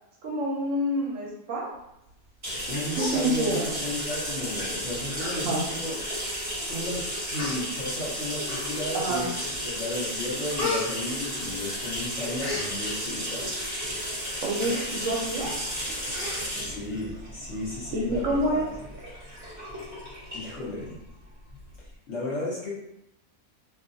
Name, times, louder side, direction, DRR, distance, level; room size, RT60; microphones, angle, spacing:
voice 1, 0.2-1.7 3.0-3.7 5.4-5.6 8.9-9.2 14.4-15.6 17.9-18.7, right 1 dB, 70° right, -2 dB, 0.9 m, -27 dB
sound 1, 2.4-21.9, equal, 25° right, 1.2 m, -33 dB
Human voice, 2.5-2.6 2.9-3.8 4.6-4.7 5.1-5.4 5.8-5.9 6.7-6.8 7.3-7.6 8.4-9.0 9.5-9.8 10.1-11.8 12.1-12.7 14.6-14.9 15.3-15.4 15.6-15.8 16.1-16.8 17.1-17.2, left 3 dB, 85° left, 1.4 m, -34 dB
voice 2, 2.7-6.0 6.7-7.0 7.3-9.3 9.6-13.5 16.6-18.7 20.3-21.0 22.1-22.7, left 1 dB, 55° left, -7 dB, 1.2 m, -34 dB
2.7 x 2.6 x 2.5 m, 0.84 s
omnidirectional pair, 1.6 m